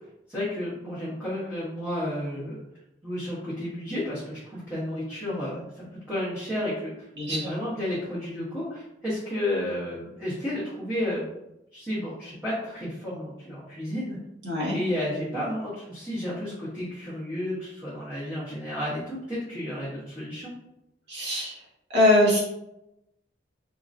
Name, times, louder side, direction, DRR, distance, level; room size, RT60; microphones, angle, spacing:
voice 1, 0.3-2.6 3.0-11.2 11.7-14.2 14.6-20.5, left 1 dB, 5° right, -12 dB, 1.1 m, -32 dB
voice 2, 7.2-7.5 14.4-14.8 21.1-21.6 21.9-22.4, left 1 dB, 65° right, -6 dB, 1.4 m, -22 dB
3.7 x 2.8 x 2.6 m, 0.85 s
head